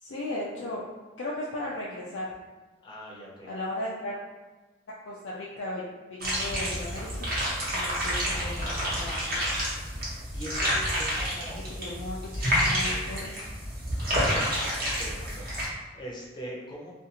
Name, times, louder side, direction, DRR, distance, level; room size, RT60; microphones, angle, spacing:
voice 1, 0.0-0.8 1.2-2.3 3.4-4.2 5.1-7.3 7.7-9.5 11.5-13.3 14.1-14.4 14.9-15.0, left 1 dB, 75° left, -5 dB, 0.4 m, -36 dB
voice 2, 2.8-3.5 7.6-7.8 10.3-11.7 14.0-16.9, equal, 25° left, -3 dB, 0.5 m, -42 dB
sound 1, 6.2-15.7, equal, 50° right, 0.9 m, -29 dB
2.5 x 2.4 x 2.8 m, 1.2 s
head